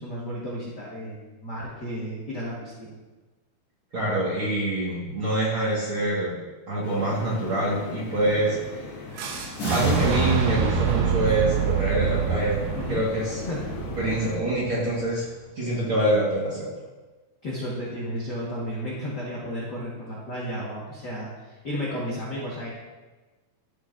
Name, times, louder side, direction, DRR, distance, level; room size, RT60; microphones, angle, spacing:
voice 1, 0.0-2.9 12.7-13.0 13.4-13.6 17.4-22.7, equal, 60° left, -6 dB, 1.1 m, -33 dB
voice 2, 3.9-6.4 6.7-8.9 9.7-13.4 14.0-15.2 15.5-16.7, right 1 dB, 50° right, -7 dB, 1.7 m, -25 dB
sound 1, 6.8-14.4, left 3 dB, 90° left, 3.1 m, -38 dB
Fire / Explosion, 9.2-15.1, right 6 dB, 85° right, 2.8 m, -26 dB
sound 2, 9.6-12.3, left 2 dB, 45° left, 3.3 m, -39 dB
13.5 x 6.6 x 2.6 m, 1.2 s
omnidirectional pair, 4.4 m